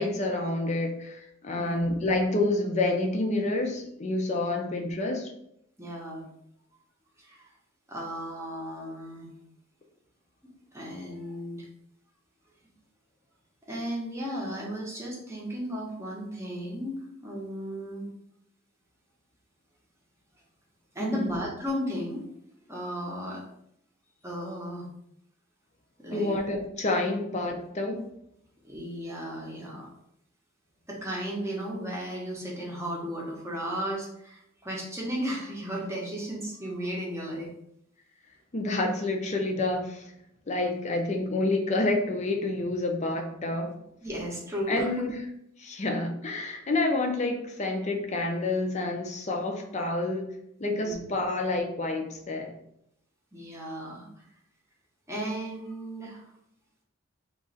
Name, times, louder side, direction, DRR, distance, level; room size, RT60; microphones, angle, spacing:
voice 1, 0.0-5.3 21.0-21.3 26.1-28.0 38.5-40.0 40.5-43.7 44.7-45.1 45.6-50.2 50.6-52.5, left 2 dB, 35° left, 2 dB, 0.5 m, -28 dB
voice 2, 1.5-1.9 4.5-4.6 5.8-6.3 7.2-7.5 7.9-9.3 10.7-11.7 13.7-18.1 20.9-22.3 22.7-23.4 24.2-24.9 26.0-26.4 28.6-29.9 30.9-37.5 44.0-45.0 50.8-51.0 53.3-54.1 55.1-56.3, equal, 15° right, -3 dB, 0.8 m, -35 dB
3.0 x 2.5 x 3.9 m, 0.75 s
head